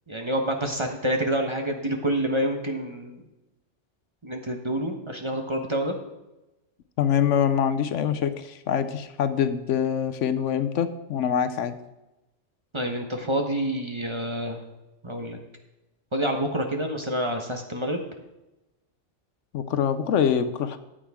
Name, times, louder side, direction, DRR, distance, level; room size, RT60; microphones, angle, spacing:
voice 1, 0.1-3.2 4.2-6.0 12.7-14.6 15.0-15.4 16.1-18.0, right 1 dB, 25° right, 3 dB, 0.9 m, -27 dB
voice 2, 7.0-11.7 19.5-20.8, left 8 dB, 75° left, 11 dB, 1.0 m, -24 dB
13.5 x 8.8 x 3.5 m, 0.99 s
omnidirectional pair, 1.3 m